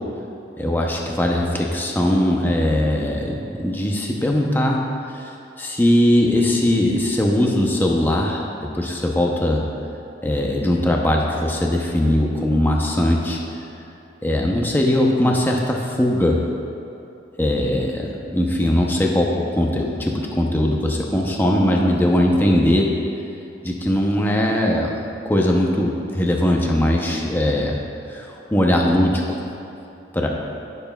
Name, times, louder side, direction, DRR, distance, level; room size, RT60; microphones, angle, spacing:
voice 1, 0.6-4.9 5.1-5.3 5.6-9.6 10.2-13.4 14.2-16.4 17.4-22.9 23.6-27.8 28.1-29.4 30.1-30.3, left 1 dB, 10° left, -1 dB, 0.6 m, -20 dB
15.5 x 6.8 x 2.3 m, 2.8 s
head